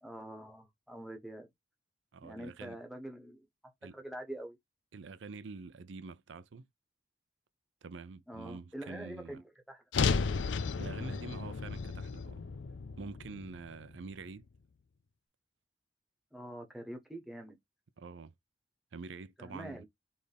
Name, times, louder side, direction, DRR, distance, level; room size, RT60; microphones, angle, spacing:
voice 1, 0.0-1.5 2.2-3.5 3.9-4.6 8.3-9.8 16.3-17.6 19.4-19.8, right 1 dB, ahead, 1.1 m, -45 dB
voice 2, 2.1-2.8 3.8-3.9 4.9-6.7 7.8-9.4 10.8-12.4 13.0-14.5 18.0-18.3 18.9-19.8, right 4 dB, 85° right, 0.5 m, -46 dB
sound 1, 9.9-14.2, left 5 dB, 80° left, 0.4 m, -34 dB
4.2 x 3.4 x 3.4 m
head